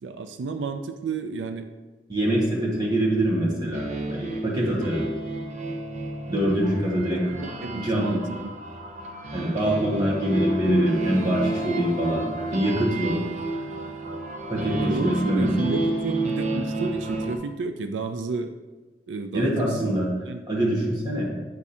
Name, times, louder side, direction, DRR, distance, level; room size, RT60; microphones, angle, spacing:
voice 1, 0.0-1.7 7.3-8.5 14.8-18.5 19.1-19.5 19.8-20.0 20.3-20.4, right 3 dB, 90° right, 8 dB, 0.4 m, -31 dB
voice 2, 2.1-5.1 6.3-7.2 7.7-8.2 9.3-13.2 14.5-15.5 19.3-20.1 20.5-21.3, right 1 dB, 25° right, -3 dB, 1.5 m, -24 dB
sound 1, 3.7-17.3, right 2 dB, 45° right, 0.8 m, -30 dB
8.2 x 3.6 x 4.2 m, 1.2 s
head